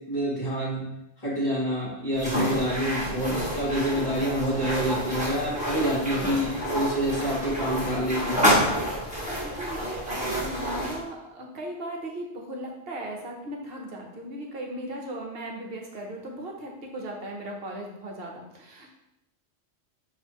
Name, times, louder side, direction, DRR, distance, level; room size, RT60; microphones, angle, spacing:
voice 1, 0.1-0.8 1.2-8.4, right 1 dB, 35° left, -10 dB, 1.5 m, -27 dB
sound 1, 2.1-11.0, equal, 5° right, 1.1 m, -28 dB
voice 2, 9.4-18.9, right 1 dB, 55° right, 0 dB, 1.0 m, -37 dB
6.3 x 2.7 x 2.9 m, 0.86 s
omnidirectional pair, 1.3 m